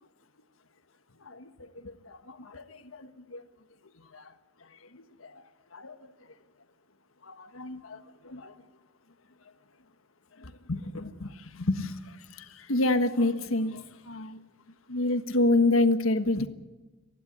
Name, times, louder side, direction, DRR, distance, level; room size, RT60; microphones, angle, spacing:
voice 1, 1.2-3.4 4.1-4.3 4.9-5.4 5.7-5.9 7.2-8.5 10.4-14.4 14.9-16.5, left 2 dB, 85° left, 10 dB, 1.5 m, -29 dB
30.0 x 11.5 x 9.8 m, 1.2 s
head